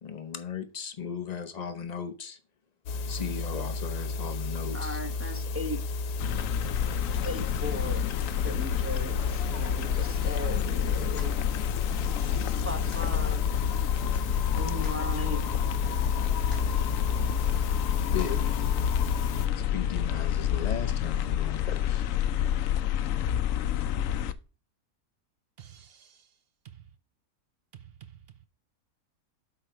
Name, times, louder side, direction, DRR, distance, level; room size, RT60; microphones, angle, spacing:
voice 1, 0.0-2.4 3.1-5.0 17.9-18.4 19.7-22.0, left 7 dB, 50° left, 0.5 m, -37 dB
sound 1, 2.9-19.5, left 3 dB, 85° left, 1.3 m, -33 dB
voice 2, 4.7-5.8 7.2-11.4 12.1-12.3 12.6-13.4 14.6-15.4, left 1 dB, 10° right, 0.9 m, -37 dB
sound 2, 6.2-24.3, left 10 dB, 70° left, 0.8 m, -29 dB
sound 3, 9.1-18.8, left 3 dB, 20° left, 3.2 m, -47 dB
voice 3, 25.6-26.4 26.6-26.9 27.7-28.5, right 10 dB, 60° right, 0.6 m, -51 dB
7.8 x 5.0 x 4.6 m
omnidirectional pair, 1.7 m